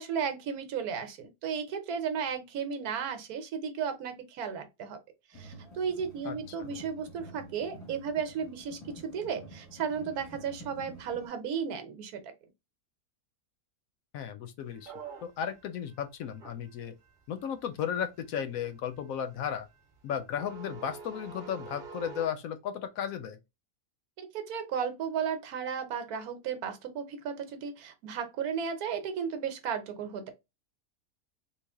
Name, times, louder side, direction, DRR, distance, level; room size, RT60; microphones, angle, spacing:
voice 1, 0.0-5.0 5.3-12.3 24.2-30.3, right 7 dB, 80° right, 1.2 m, -34 dB
sound 1, 5.3-11.3, right 2 dB, 10° left, 1.1 m, -49 dB
voice 2, 14.1-14.9 15.2-17.0 17.3-19.7 20.0-23.4, left 8 dB, 75° left, 0.9 m, -35 dB
sound 2, 14.7-22.3, right 5 dB, 40° right, 0.8 m, -47 dB
3.3 x 2.4 x 3.4 m
omnidirectional pair, 1.6 m